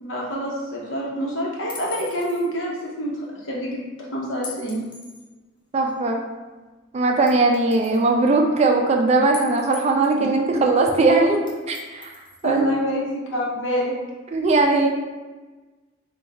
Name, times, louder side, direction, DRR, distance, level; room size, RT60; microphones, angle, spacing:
voice 1, 0.0-4.8 12.4-13.9, equal, 70° left, -3 dB, 0.9 m, -27 dB
sound 1, 1.7-2.5 4.4-5.3 5.9-6.0 7.3-8.0 9.3-10.2 11.5-12.5, left 5 dB, 25° left, 0.5 m, -39 dB
voice 2, 5.7-6.2 6.9-12.6 14.3-14.9, right 3 dB, 35° right, 2 dB, 0.4 m, -19 dB
4.0 x 2.3 x 3.4 m, 1.2 s
head